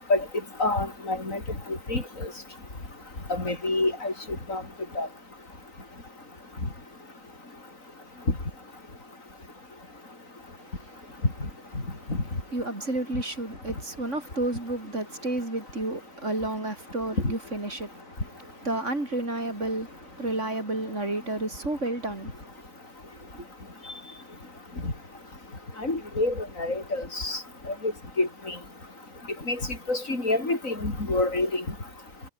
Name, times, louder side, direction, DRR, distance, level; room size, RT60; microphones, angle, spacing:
voice 1, 0.6-1.4 1.9-2.3 3.3-4.1 4.5-4.6 5.0-5.1 24.8-24.9 25.8-27.4 28.2-28.6 29.5-29.6 29.9-31.6, left 2 dB, 90° left, 5.7 m, -27 dB
voice 2, 10.6-11.3 11.8-12.1 12.5-22.5 23.4-23.5, right 2 dB, 65° right, 6.0 m, -32 dB
omnidirectional pair, 1.4 m